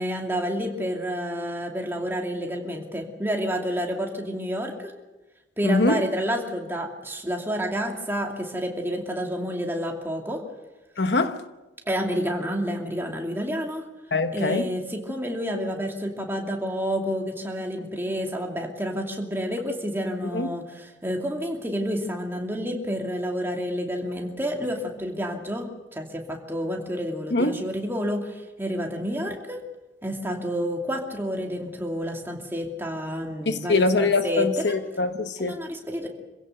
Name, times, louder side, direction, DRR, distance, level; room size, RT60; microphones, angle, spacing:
voice 1, 0.0-4.9 5.6-10.4 11.9-13.8 14.3-29.6 30.0-34.7 35.4-36.1, equal, 15° right, 2.6 m, -29 dB
voice 2, 5.6-6.0 11.0-11.4 14.1-14.6 20.3-20.5 27.3-27.5 33.5-35.6, left 3 dB, 65° left, 1.1 m, -23 dB
26.5 x 16.5 x 6.7 m
head